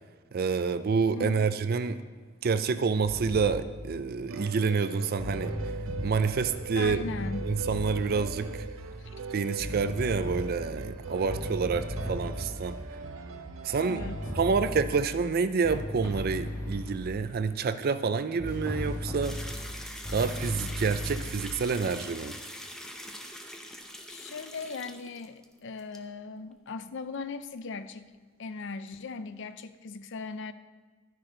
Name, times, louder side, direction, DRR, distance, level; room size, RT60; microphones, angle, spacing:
voice 1, 0.3-2.0 2.4-5.6 6.0-7.0 7.5-8.6 9.3-12.8 13.6-14.0 14.4-19.4 20.1-22.4, right 5 dB, 45° right, 12 dB, 0.4 m, -28 dB
voice 2, 1.1-1.5 6.8-7.5 9.0-9.1 13.8-14.2 24.1-28.1 28.4-30.5, left 4 dB, 60° left, 11 dB, 0.5 m, -38 dB
sound 1, 3.0-3.7 5.2-6.2 6.8-8.1 9.6-10.8 11.2-12.6 14.0-15.1 15.6-17.0 18.4-21.3, left 1 dB, 20° left, 2.2 m, -36 dB
sound 2, 4.3-14.5, right 4 dB, 80° right, 0.7 m, -40 dB
sound 3, 19.2-25.5 25.8-26.0, equal, 5° left, 0.7 m, -43 dB
12.0 x 10.5 x 3.9 m, 1.4 s
head